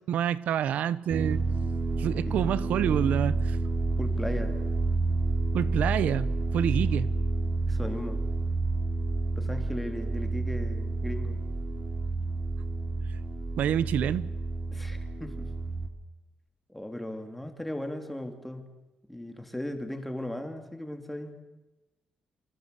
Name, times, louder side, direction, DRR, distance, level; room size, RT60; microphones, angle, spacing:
voice 1, 0.1-1.4 2.0-3.6 5.5-7.1 13.6-14.3, right 9 dB, 90° right, 1.0 m, -27 dB
sound 1, 1.1-15.9, right 3 dB, 35° right, 3.2 m, -29 dB
voice 2, 4.0-4.6 6.8-7.0 7.7-8.2 9.4-11.4 14.7-15.5 16.7-18.7 19.1-21.4, left 1 dB, 5° left, 3.0 m, -37 dB
29.0 x 25.0 x 8.3 m
wide cardioid pair, 160°, 3 cm